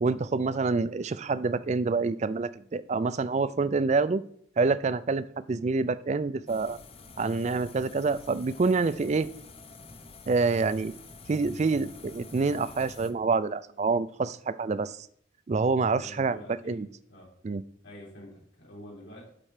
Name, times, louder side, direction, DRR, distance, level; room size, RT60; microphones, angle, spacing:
voice 1, 0.0-4.2 4.6-6.8 7.2-9.3 10.3-10.9 11.3-15.1 15.5-16.9 17.4-17.6, right 4 dB, 35° right, 15 dB, 0.3 m, -27 dB
sound 1, 6.5-13.1, left 4 dB, 30° left, 0.7 m, -48 dB
voice 2, 16.0-16.8 17.1-17.3 17.8-19.3, equal, 65° left, -4 dB, 4.0 m, -47 dB
11.5 x 4.4 x 5.0 m, 0.64 s
head